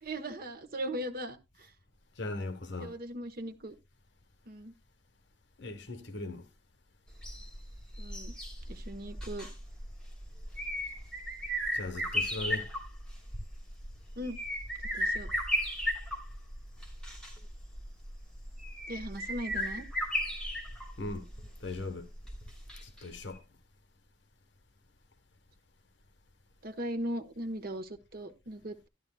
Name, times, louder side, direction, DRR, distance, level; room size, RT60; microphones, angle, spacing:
voice 1, 0.0-1.7 2.8-3.7 4.5-4.7 8.0-8.3 8.7-9.5 14.2-14.4 14.9-15.3 18.9-19.9 26.6-28.9, right 1 dB, 55° right, 1.1 m, -38 dB
voice 2, 2.2-3.0 5.6-6.4 11.7-12.7 21.0-21.3 21.6-22.1 22.8-23.4, left 2 dB, 70° left, 1.1 m, -38 dB
sound 1, 7.1-23.0 23.3-23.4, equal, 5° left, 3.0 m, -36 dB
12.0 x 11.5 x 2.2 m
head